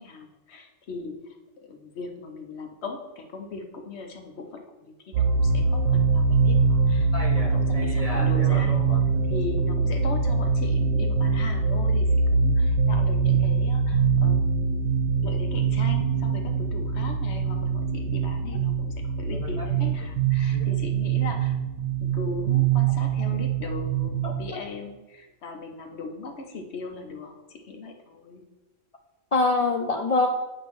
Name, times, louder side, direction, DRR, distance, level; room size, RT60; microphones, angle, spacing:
voice 1, 0.0-8.8 9.3-14.9 15.2-21.6 22.0-28.4, left 3 dB, 60° left, 4 dB, 1.1 m, -38 dB
sound 1, 5.1-24.4, right 5 dB, 85° right, 1.0 m, -23 dB
voice 2, 7.1-9.2 19.6-19.7 20.5-20.7 24.2-24.6 29.3-30.3, left 3 dB, 80° left, 3 dB, 0.3 m, -27 dB
8.8 x 3.0 x 6.0 m, 1.1 s
omnidirectional pair, 1.3 m